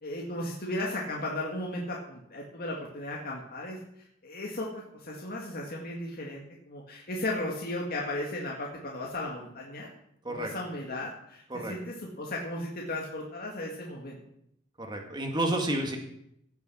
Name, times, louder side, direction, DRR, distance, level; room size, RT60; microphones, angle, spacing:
voice 1, 0.0-9.9 10.3-14.2, left 1 dB, 50° left, -2 dB, 2.1 m, -36 dB
voice 2, 14.9-16.0, right 1 dB, 20° right, 2 dB, 2.1 m, -30 dB
17.0 x 7.1 x 6.3 m, 0.74 s
head